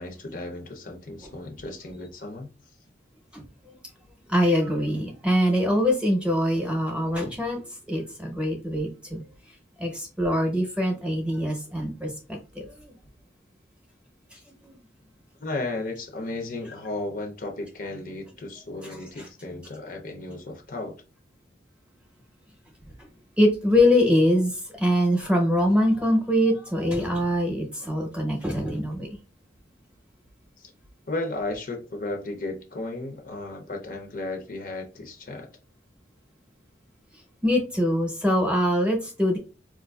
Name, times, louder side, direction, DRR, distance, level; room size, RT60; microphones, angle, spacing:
voice 1, 0.0-2.5 15.4-21.0 30.6-30.7 31.1-35.5, left 2 dB, 45° left, 0.6 m, -34 dB
voice 2, 4.3-7.6 7.9-9.2 9.8-12.9 14.3-14.8 23.4-29.1 37.4-39.4, equal, 5° right, 0.8 m, -23 dB
4.4 x 2.5 x 2.3 m
head